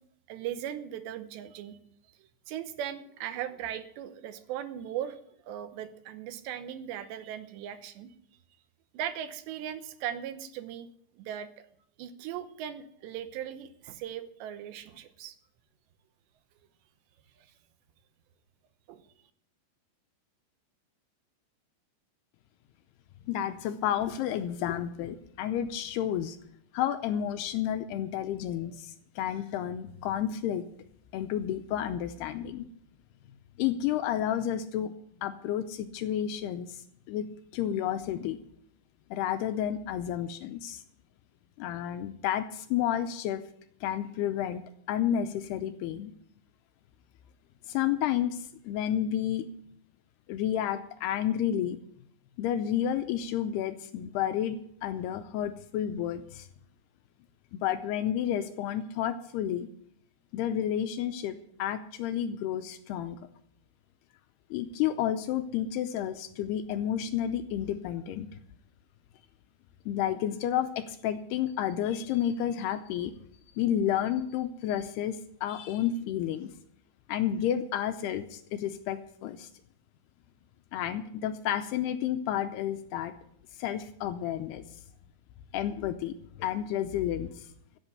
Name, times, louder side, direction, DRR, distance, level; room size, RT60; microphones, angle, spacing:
voice 1, 0.3-1.8 2.5-5.2 5.5-8.1 8.9-10.9 11.2-11.5 12.0-15.4 18.9-19.0, right 10 dB, 80° right, 10 dB, 3.1 m, -38 dB
voice 2, 23.3-26.4 26.7-30.7 31.1-32.7 33.6-34.9 35.2-38.4 39.1-40.8 41.6-43.4 43.8-46.1 47.7-49.5 50.3-51.8 52.4-56.5 57.5-59.7 60.3-63.2 64.5-68.3 69.9-73.1 73.6-76.5 77.1-79.5 80.7-83.1 83.6-84.6 85.5-87.5, left 10 dB, 80° left, 10 dB, 2.5 m, -31 dB
15.0 x 8.1 x 8.0 m, 0.68 s
omnidirectional pair, 5.1 m